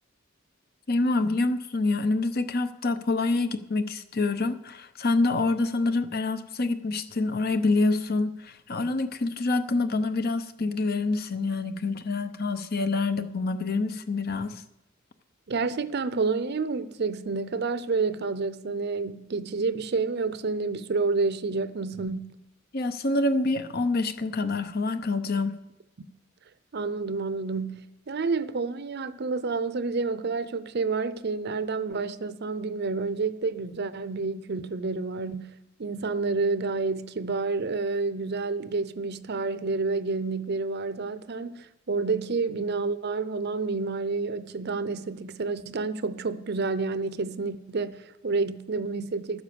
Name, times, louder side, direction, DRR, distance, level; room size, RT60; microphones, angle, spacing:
voice 1, 0.9-14.6 22.7-25.5, left 3 dB, 50° left, 0.8 m, -26 dB
voice 2, 15.5-22.4 26.7-49.4, right 4 dB, 55° right, 0.6 m, -29 dB
12.5 x 9.7 x 6.9 m
head